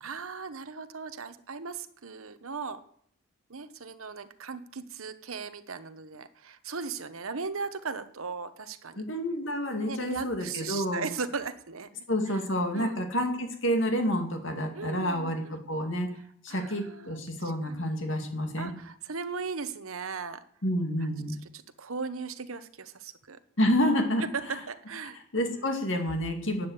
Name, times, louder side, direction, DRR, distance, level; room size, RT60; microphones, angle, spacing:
voice 1, 0.0-2.8 3.5-9.0 9.8-11.9 12.7-13.1 14.7-15.6 16.5-17.2 17.6-18.2 18.6-20.4 21.5-23.4 24.3-25.2 25.6-25.7, right 5 dB, 90° right, 12 dB, 1.1 m, -38 dB
voice 2, 9.0-11.1 12.1-16.1 16.4-18.7 20.6-21.4 23.6-24.6 25.3-26.7, equal, 65° left, 4 dB, 2.4 m, -29 dB
11.5 x 8.5 x 8.1 m, 0.62 s
head